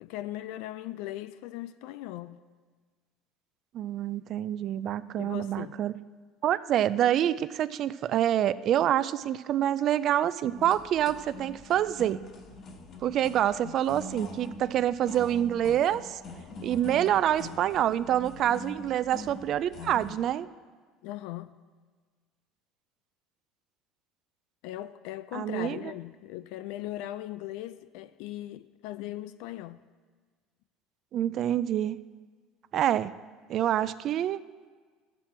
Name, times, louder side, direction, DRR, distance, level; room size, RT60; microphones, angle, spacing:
voice 1, 0.0-2.4 5.2-5.8 13.6-13.8 21.0-21.5 24.6-29.8, left 14 dB, 75° left, 0.3 m, -39 dB
voice 2, 3.7-6.0 6.4-12.2 13.0-16.2 16.6-20.5 25.3-25.8 31.1-32.0 32.7-33.1 33.5-34.4, right 11 dB, 50° right, 0.4 m, -27 dB
sound 1, 10.4-20.3, left 2 dB, 40° left, 1.3 m, -44 dB
12.5 x 7.5 x 4.4 m
cardioid pair, 125°, 0 cm